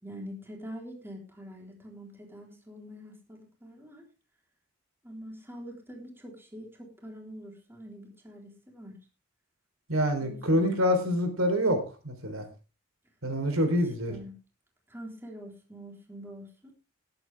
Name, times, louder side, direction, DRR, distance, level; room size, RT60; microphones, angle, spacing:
voice 1, 0.0-4.1 5.0-9.0 10.2-10.8 13.4-13.8 14.1-14.3 14.9-16.7, equal, 10° right, 0 dB, 3.7 m, -45 dB
voice 2, 9.9-12.5 13.2-14.1, equal, 75° right, 6 dB, 3.7 m, -26 dB
20.5 x 8.8 x 3.5 m, 0.32 s
head